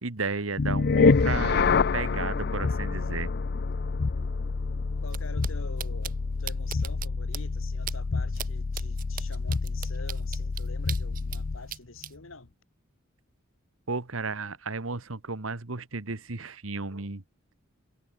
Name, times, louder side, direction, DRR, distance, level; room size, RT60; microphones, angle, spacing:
voice 1, 0.0-3.3 13.9-17.2, right 3 dB, 85° right, 1.7 m, -33 dB
sound 1, 0.6-11.7, left 4 dB, 55° left, 0.6 m, -27 dB
voice 2, 4.9-12.5, left 3 dB, 80° left, 4.6 m, -46 dB
sound 2, 5.1-5.2 5.4-5.5 5.8-6.1 6.5-7.1 7.3-7.4 7.9-8.0 8.3-8.5 8.7-11.4 11.7-12.1, right 11 dB, 45° right, 0.6 m, -37 dB
head